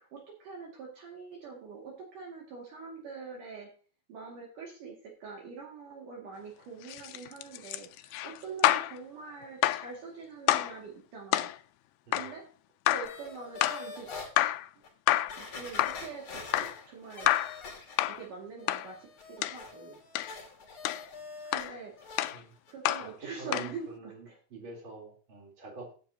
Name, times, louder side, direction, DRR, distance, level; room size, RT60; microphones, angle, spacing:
voice 1, 0.0-3.7 4.1-11.5 12.1-12.5 12.9-14.1 15.4-17.3 18.1-20.0 21.4-21.9 22.7-24.4, right 5 dB, 60° right, -3 dB, 3.5 m, -44 dB
sound 1, 6.8-9.0 9.6-9.9 10.5-10.8 11.3-11.6 12.1-12.3 12.9-13.2 13.6-13.9 14.4-14.7 15.1-15.4 15.8-16.1 16.5-16.8 17.3-17.6 18.0-18.2 18.7-18.9 19.4-19.6 20.2-20.3 20.8-21.1 21.5-21.7 22.2-22.4 22.9-23.1 23.5-23.7, left 15 dB, 80° left, 2.3 m, -28 dB
sound 2, 13.0-14.3 14.8-14.9 15.3-18.3 18.6-21.7 22.0-22.3 22.7-22.8, left 4 dB, 40° left, 2.9 m, -45 dB
voice 2, 23.0-25.9, right 3 dB, 35° right, -1 dB, 4.1 m, -46 dB
15.5 x 8.3 x 2.8 m, 0.39 s
omnidirectional pair, 4.2 m